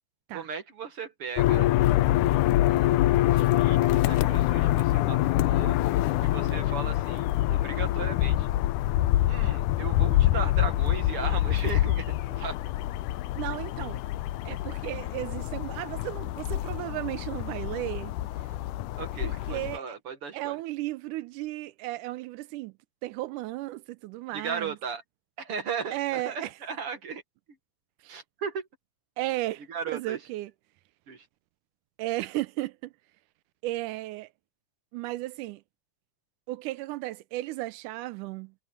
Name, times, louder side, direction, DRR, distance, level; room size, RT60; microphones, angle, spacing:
voice 1, 0.3-1.7 2.7-5.8 6.0-8.5 9.3-12.6 19.0-20.6 24.3-25.0 25.4-27.2 28.1-28.7 29.7-30.2 31.1-31.3, right 6 dB, 50° right, 2.2 m, -37 dB
sound 1, 1.4-19.8, left 15 dB, 85° left, 2.1 m, -25 dB
voice 2, 13.4-14.0 14.5-18.1 19.2-20.0 20.3-22.7 23.0-24.8 25.9-26.5 28.0-28.2 29.2-30.5 32.0-32.9 33.6-34.3 34.9-35.6 36.5-38.5, right 17 dB, 85° right, 2.1 m, -34 dB
omnidirectional pair, 3.6 m